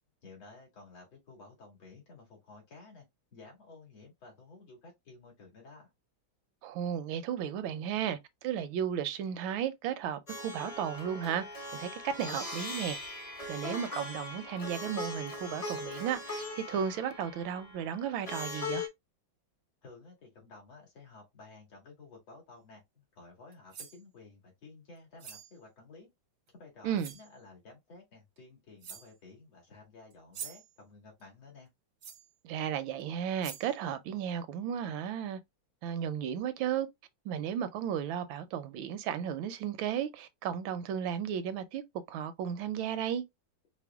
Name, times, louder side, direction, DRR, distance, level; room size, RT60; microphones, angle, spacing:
voice 1, 0.2-3.1 3.3-5.9 19.8-26.1 26.5-31.7, left 3 dB, 75° left, 2.8 m, -53 dB
voice 2, 6.6-11.4 11.7-13.0 13.5-18.8 26.8-27.1 32.4-35.4 35.8-36.9 37.2-41.8 42.1-43.2, right 9 dB, 85° right, 1.4 m, -34 dB
Plucked string instrument, 10.3-18.9, left 2 dB, 40° left, 0.4 m, -40 dB
sound 1, 23.5-24.0 25.2-25.5 26.5-26.6 27.0-27.3 28.4-28.5 28.8-29.2 30.1-30.7 32.0-32.3 33.0-33.1 33.4-33.8, right 7 dB, 60° right, 0.8 m, -45 dB
5.0 x 2.1 x 3.4 m
omnidirectional pair, 2.1 m